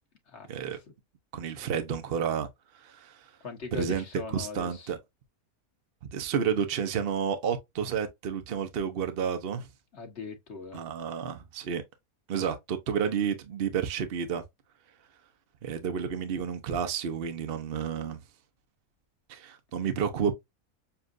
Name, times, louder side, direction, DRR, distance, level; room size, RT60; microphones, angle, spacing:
voice 1, 1.3-2.5 2.7-3.3 3.7-4.0 4.3-5.0 6.1-9.7 10.7-11.8 12.3-14.4 15.6-18.2 19.3-20.3, right 7 dB, 50° right, 0.8 m, -30 dB
voice 2, 3.4-4.9 9.9-10.8, left 4 dB, 50° left, 1.5 m, -40 dB
7.0 x 2.4 x 2.5 m
omnidirectional pair, 1.6 m